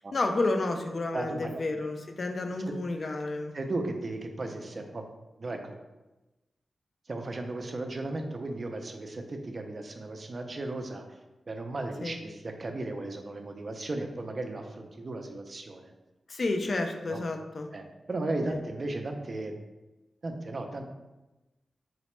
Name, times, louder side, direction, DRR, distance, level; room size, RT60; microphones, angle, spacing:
voice 1, 0.1-3.5 12.0-12.2 16.3-17.7 18.4-18.6, left 2 dB, 50° left, 5 dB, 0.3 m, -30 dB
voice 2, 1.1-1.6 2.7-2.8 3.5-5.0 5.4-5.8 7.1-11.2 11.5-15.9 17.0-17.2 17.7-19.6 20.2-20.8, right 2 dB, 40° right, 4 dB, 0.4 m, -35 dB
3.9 x 2.1 x 3.0 m, 1.1 s
wide cardioid pair, 120°, 0 cm